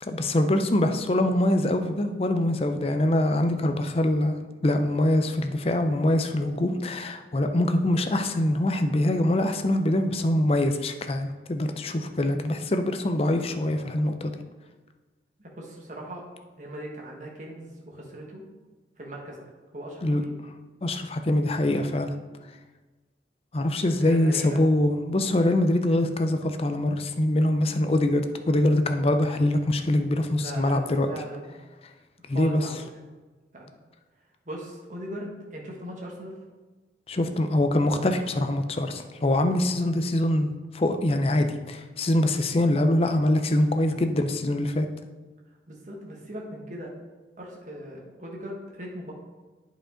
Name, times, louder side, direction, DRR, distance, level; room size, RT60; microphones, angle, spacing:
voice 1, 0.0-14.3 20.0-20.2 20.8-22.2 23.5-31.1 32.3-32.6 37.1-44.9, left 1 dB, 35° left, 7 dB, 0.5 m, -24 dB
voice 2, 15.4-16.2 16.6-18.4 19.0-19.4 19.7-20.3 23.8-24.6 30.4-31.6 32.3-32.8 33.5-33.7 34.4-36.4 45.7-46.9 47.4-49.1, equal, 45° right, -1 dB, 1.4 m, -39 dB
8.6 x 5.1 x 3.8 m, 1.3 s
head